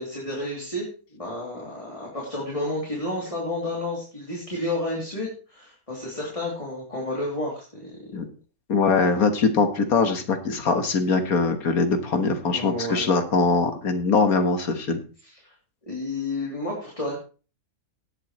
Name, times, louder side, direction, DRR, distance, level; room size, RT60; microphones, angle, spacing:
voice 1, 0.0-8.2 12.5-13.1 15.2-15.5 15.9-17.2, left 1 dB, 25° left, -3 dB, 3.1 m, -31 dB
voice 2, 8.7-15.0, left 4 dB, 85° left, 7 dB, 1.9 m, -22 dB
18.0 x 8.1 x 3.1 m, 0.36 s
omnidirectional pair, 1.5 m